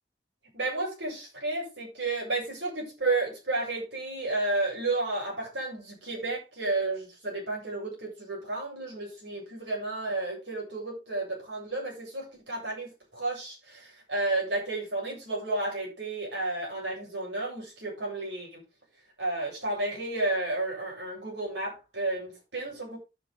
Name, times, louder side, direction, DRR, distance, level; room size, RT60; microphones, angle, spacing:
voice 1, 0.5-18.6 19.2-23.0, right 2 dB, 85° right, 7.8 m, -32 dB
10.5 x 9.6 x 3.7 m
head